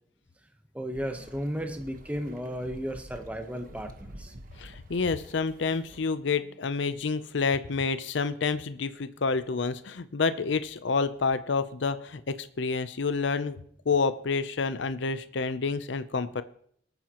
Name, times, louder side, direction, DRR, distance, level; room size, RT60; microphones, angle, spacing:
voice 1, 0.7-4.3, equal, 5° right, 5 dB, 1.0 m, -34 dB
sound 1, 0.9-6.1, right 1 dB, 45° right, 1.2 m, -48 dB
voice 2, 4.6-13.6 13.9-16.4, left 4 dB, 70° left, 13 dB, 0.6 m, -28 dB
22.0 x 9.2 x 3.0 m, 0.65 s
head